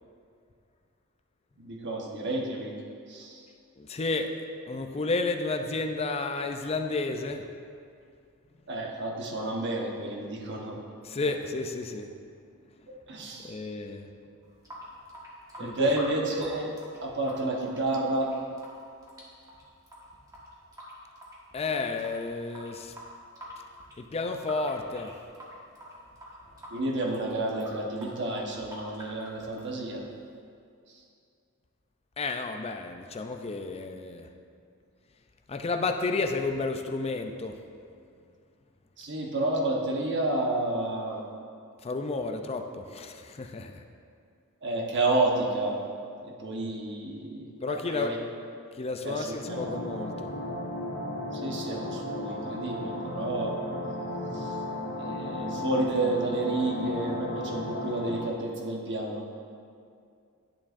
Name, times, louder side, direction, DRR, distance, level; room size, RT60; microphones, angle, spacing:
voice 1, 1.6-2.7 3.1-3.4 8.7-10.8 13.1-13.6 15.6-18.3 26.7-30.0 39.0-41.2 44.6-45.8 46.2-48.2 49.0-49.7 51.3-53.5 54.3-54.5 55.0-59.2, right 2 dB, 55° right, 0 dB, 1.1 m, -30 dB
voice 2, 3.8-4.3 4.7-7.5 11.0-12.1 13.4-14.1 15.6-15.9 21.5-22.9 24.0-25.1 32.2-34.3 35.5-37.6 41.8-43.8 47.6-48.2 48.7-50.3, left 3 dB, 25° left, 5 dB, 0.4 m, -31 dB
Water tap faucet / Sink (filling or washing) / Drip, 14.4-30.4, equal, 15° right, 1.4 m, -47 dB
sound 1, 49.4-58.2, left 1 dB, 65° left, 1.7 m, -35 dB
10.5 x 7.2 x 2.6 m, 2.4 s
head